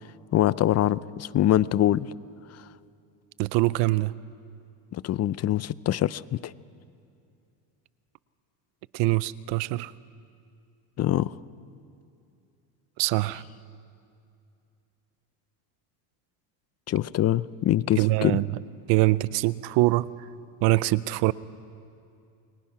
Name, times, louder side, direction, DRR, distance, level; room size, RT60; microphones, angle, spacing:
voice 1, 0.3-2.1 4.9-6.5 11.0-11.3 16.9-18.4, left 12 dB, 35° left, 18 dB, 0.5 m, -24 dB
voice 2, 3.4-4.1 8.9-9.9 13.0-13.4 18.0-18.6 18.9-20.1 20.6-21.3, right 20 dB, 75° right, 19 dB, 0.7 m, -23 dB
29.0 x 23.5 x 5.8 m, 2.5 s
supercardioid pair, 110°, 43 cm